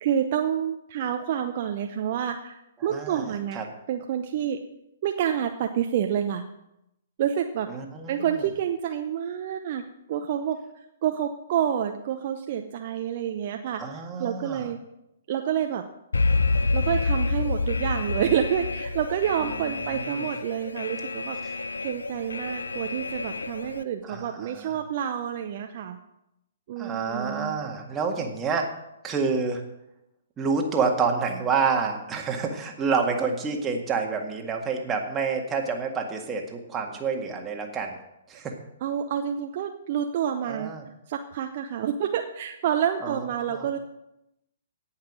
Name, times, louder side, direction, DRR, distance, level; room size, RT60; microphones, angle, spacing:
voice 1, 0.0-3.6 3.9-4.6 5.0-6.4 7.2-7.7 8.1-9.8 10.1-14.8 15.3-15.8 16.7-21.6 21.8-26.0 26.7-27.6 38.8-40.7 41.1-43.8, right 9 dB, 45° right, 5 dB, 0.8 m, -28 dB
voice 2, 2.8-3.6 7.7-8.3 13.8-14.7 19.4-20.3 21.4-21.5 24.0-24.7 26.8-28.7 29.0-29.6 30.4-38.0 38.3-38.5 40.5-40.8 43.0-43.7, right 5 dB, 15° right, 1 dB, 1.9 m, -28 dB
Alarm, 16.1-23.8, left 3 dB, 75° left, 0.6 m, -28 dB
17.5 x 5.8 x 6.1 m, 0.86 s
figure-of-eight pair, 120°, 0 cm